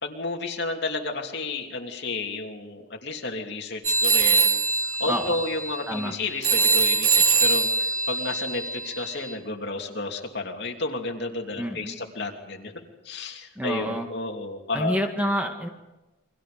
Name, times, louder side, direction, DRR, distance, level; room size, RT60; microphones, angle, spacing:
voice 1, 0.0-4.6 5.0-12.7 13.0-15.0, left 3 dB, 55° left, 2 dB, 3.0 m, -32 dB
sound 1, 3.8-9.3, right 4 dB, 85° right, 4.0 m, -23 dB
voice 2, 11.6-12.0 13.6-14.1 14.7-15.7, equal, 5° right, 2 dB, 2.0 m, -28 dB
29.5 x 24.5 x 5.2 m, 1.1 s
head